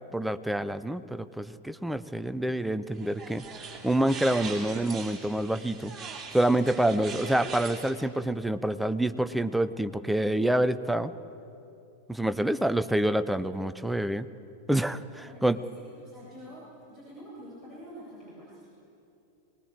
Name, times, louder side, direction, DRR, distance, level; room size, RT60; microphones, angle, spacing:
voice 1, 0.1-3.4 3.8-5.9 6.3-11.1 12.1-14.3 14.7-15.6, right 1 dB, 5° right, 12 dB, 0.7 m, -27 dB
sound 1, 2.9-7.9, right 5 dB, 20° right, 3.5 m, -41 dB
voice 2, 15.2-16.6 16.9-18.8, equal, 20° left, -7 dB, 7.7 m, -47 dB
23.0 x 19.5 x 7.5 m, 2.8 s
figure-of-eight pair, 90°, 0 cm